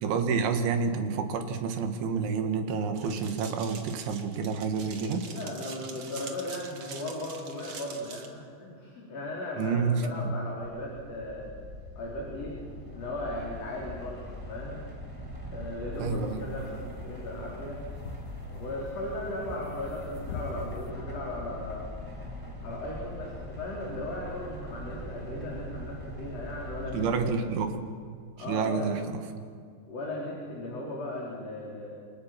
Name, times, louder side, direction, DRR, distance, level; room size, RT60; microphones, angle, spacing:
voice 1, 0.0-5.3 9.6-10.3 16.0-16.5 26.9-27.8 28.5-29.0, right 5 dB, 75° right, 6 dB, 4.2 m, -29 dB
sound 1, 3.0-8.3, right 5 dB, 50° right, 1.8 m, -45 dB
voice 2, 5.2-11.5 12.0-12.5 12.9-14.8 15.5-17.8 18.5-21.9 22.6-27.5 28.4-28.9 29.9-32.0, left 1 dB, 35° left, -4 dB, 5.0 m, -37 dB
sound 2, 10.6-27.2, equal, 5° right, 3.9 m, -41 dB
sound 3, 15.9-20.9, left 5 dB, 75° left, 3.8 m, -42 dB
29.0 x 25.5 x 6.0 m, 2.1 s
omnidirectional pair, 5.5 m